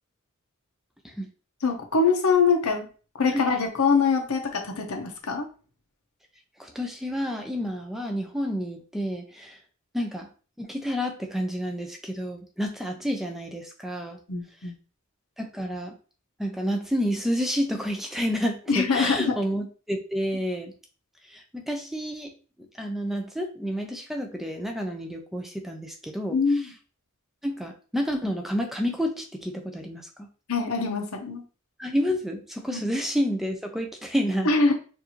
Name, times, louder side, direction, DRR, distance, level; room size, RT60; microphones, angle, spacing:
voice 1, 1.6-2.8 3.2-5.5 14.3-14.7 18.7-19.3 26.3-26.7 30.5-31.4 32.7-32.9 34.4-34.7, left 4 dB, 85° left, 3 dB, 0.9 m, -23 dB
voice 2, 6.6-9.6 9.9-10.3 10.6-14.2 15.4-16.0 16.4-20.7 21.3-22.3 22.8-26.4 27.4-30.3 31.8-34.5, equal, ahead, 3 dB, 0.4 m, -29 dB
4.5 x 2.6 x 2.9 m, 0.36 s
head